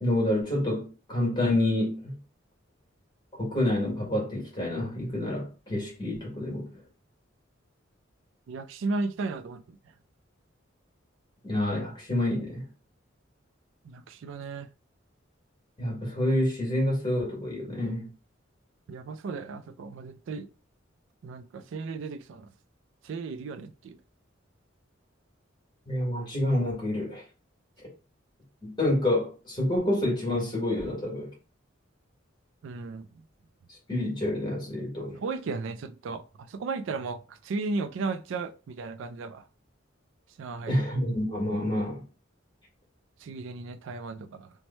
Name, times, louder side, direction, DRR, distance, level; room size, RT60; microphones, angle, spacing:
voice 1, 0.0-2.2 3.4-6.8 11.4-12.7 15.8-18.1 25.9-27.2 28.6-31.3 33.9-35.2 40.7-42.0, left 1 dB, 25° left, 1.4 m, -28 dB
voice 2, 8.5-9.8 13.8-14.7 18.9-20.5 21.2-22.5 23.0-24.0 32.6-33.1 35.1-39.4 40.4-40.7 43.2-44.5, right 3 dB, 70° right, 0.3 m, -35 dB
3.1 x 2.1 x 4.1 m
head